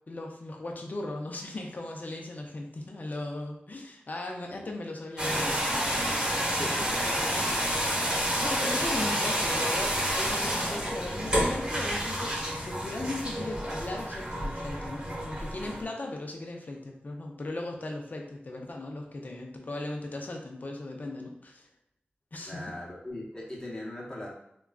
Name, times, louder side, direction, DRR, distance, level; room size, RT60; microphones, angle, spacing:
voice 1, 0.1-5.9 6.8-6.9 8.4-21.7 22.3-22.7, left 2 dB, 50° left, 1 dB, 0.5 m, -37 dB
sound 1, 5.2-15.8, equal, 20° right, 0.9 m, -29 dB
voice 2, 6.6-8.1 22.5-24.3, left 1 dB, 20° left, -4 dB, 0.8 m, -40 dB
3.5 x 2.2 x 2.3 m, 0.76 s
wide cardioid pair, 90°, 4 cm